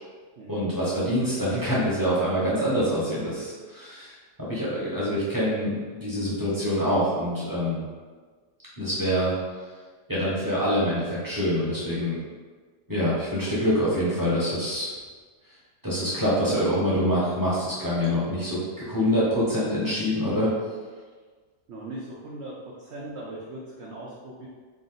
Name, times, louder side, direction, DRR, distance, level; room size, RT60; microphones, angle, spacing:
voice 1, 0.5-4.1 4.4-7.8 8.8-9.3 10.1-12.2 12.9-14.9 15.8-20.5, equal, 15° right, -9 dB, 0.8 m, -25 dB
voice 2, 21.7-24.5, right 2 dB, 85° right, -4 dB, 0.6 m, -39 dB
3.6 x 2.6 x 3.9 m, 1.5 s
omnidirectional pair, 1.8 m